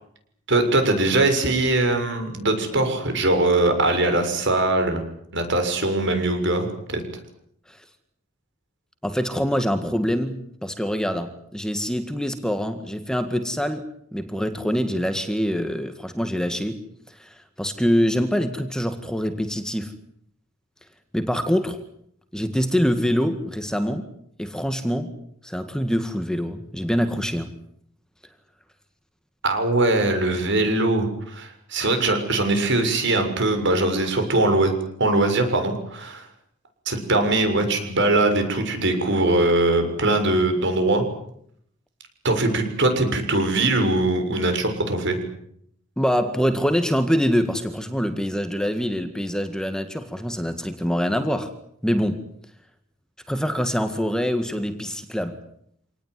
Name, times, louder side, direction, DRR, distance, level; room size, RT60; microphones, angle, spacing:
voice 1, 0.5-5.0 5.3-7.0 29.4-34.7 35.0-36.3 36.8-41.0 42.2-45.2, right 2 dB, 60° right, 7 dB, 6.8 m, -21 dB
voice 2, 9.0-16.8 17.1-19.9 21.1-21.8 22.3-24.1 24.4-25.1 25.4-27.5 46.0-51.5 51.8-52.2 53.3-55.4, equal, 5° left, 8 dB, 1.9 m, -25 dB
27.0 x 19.0 x 9.6 m, 0.70 s
head